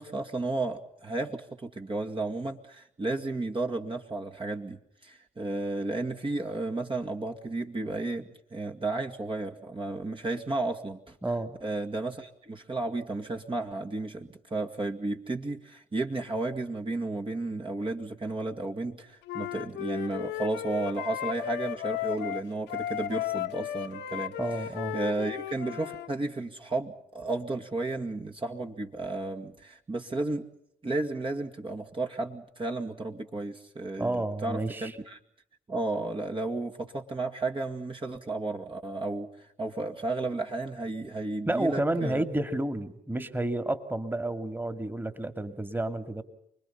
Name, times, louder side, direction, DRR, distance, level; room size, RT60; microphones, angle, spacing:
voice 1, 0.0-11.2 11.6-30.5 30.8-35.2 35.7-42.2, right 2 dB, 30° right, 2 dB, 2.2 m, -33 dB
voice 2, 11.2-11.6 24.4-25.0 34.0-34.9 41.5-46.2, right 1 dB, 10° right, 9 dB, 2.6 m, -30 dB
Wind instrument woodwind instrument, 19.3-26.1, left 12 dB, 75° left, 1.4 m, -35 dB
29.5 x 21.0 x 5.7 m, 0.73 s
hypercardioid pair, 50°, 18 cm